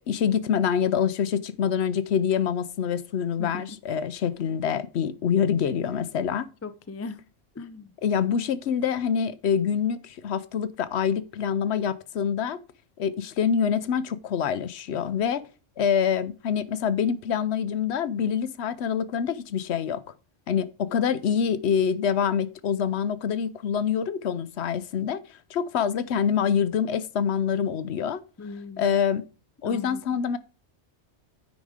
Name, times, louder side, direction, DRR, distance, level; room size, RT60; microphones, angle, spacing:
voice 1, 0.1-6.5 8.0-12.6 13.0-15.4 15.8-20.0 20.5-28.2 28.8-29.2 29.6-30.4, left 7 dB, 70° left, 0.9 m, -26 dB
voice 2, 6.6-7.2 7.5-7.9 28.4-29.0 29.6-30.0, left 4 dB, 25° left, 0.3 m, -38 dB
9.3 x 5.0 x 4.9 m
omnidirectional pair, 1.2 m